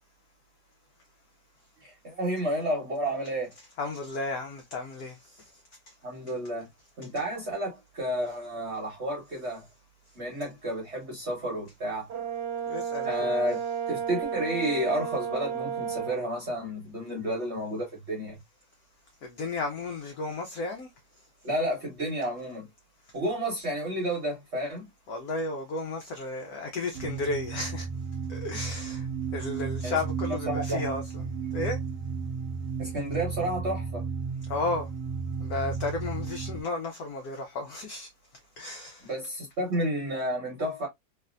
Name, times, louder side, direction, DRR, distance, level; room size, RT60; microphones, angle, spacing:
voice 1, 1.8-3.5 6.0-6.7 7.0-9.7 10.2-12.1 13.1-13.6 13.9-18.4 21.4-22.7 23.1-24.9 29.8-30.0 30.5-30.9 32.8-34.0 39.0-40.9, right 1 dB, 45° right, 1.1 m, -31 dB
voice 2, 3.8-5.2 12.7-13.3 19.2-20.9 25.1-27.9 28.3-29.0 29.3-31.0 31.5-31.8 34.5-34.9 35.4-38.1 38.6-39.1, left 3 dB, 70° left, 0.9 m, -33 dB
Brass instrument, 12.1-16.2, right 7 dB, 70° right, 1.3 m, -32 dB
sound 1, 26.9-36.6, right 5 dB, 85° right, 1.3 m, -34 dB
3.2 x 2.6 x 2.4 m
omnidirectional pair, 2.0 m